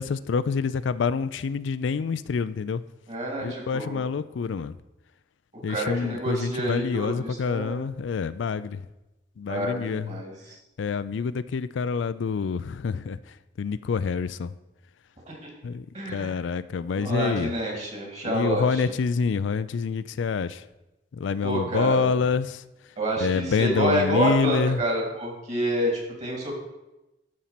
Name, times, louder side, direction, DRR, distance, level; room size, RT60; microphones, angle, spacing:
voice 1, 0.0-2.8 3.4-4.7 5.6-8.8 9.4-10.2 10.8-13.2 13.6-14.5 15.6-15.9 16.1-17.5 18.3-20.6 21.1-22.6 23.2-24.8, left 5 dB, 75° left, 15 dB, 0.4 m, -27 dB
voice 2, 3.1-4.0 5.5-7.8 9.5-10.6 15.3-15.5 15.9-16.4 16.9-18.9 21.4-22.1 23.0-26.5, right 1 dB, 40° right, 0 dB, 2.8 m, -28 dB
12.5 x 4.3 x 5.8 m, 0.99 s
head